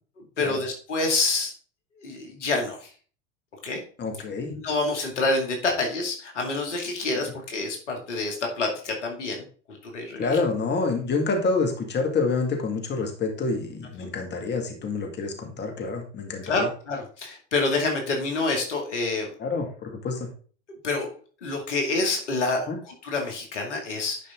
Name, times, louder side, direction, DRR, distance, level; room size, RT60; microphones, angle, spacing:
voice 1, 0.4-1.5 2.0-2.9 3.6-3.8 4.5-10.4 16.4-19.3 20.8-21.1 21.4-24.3, left 3 dB, 75° left, 2 dB, 2.4 m, -27 dB
voice 2, 4.0-4.5 10.2-16.7 19.4-20.3 22.7-22.8, left 4 dB, 30° left, 3 dB, 2.1 m, -27 dB
10.5 x 5.2 x 3.7 m, 0.42 s
hypercardioid pair, 85°, 36 cm